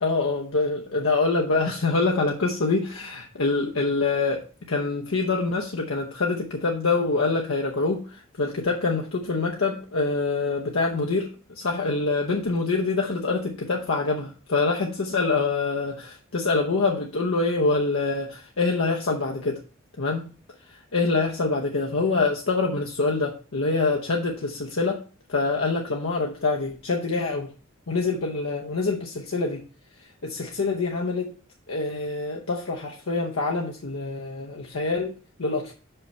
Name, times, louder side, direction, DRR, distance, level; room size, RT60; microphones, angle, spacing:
voice 1, 0.0-19.6 20.0-20.3 20.7-25.0 25.3-27.5 27.9-29.6 30.2-31.3 31.7-35.7, left 3 dB, 75° left, 0 dB, 0.8 m, -25 dB
5.8 x 5.5 x 5.4 m, 0.39 s
head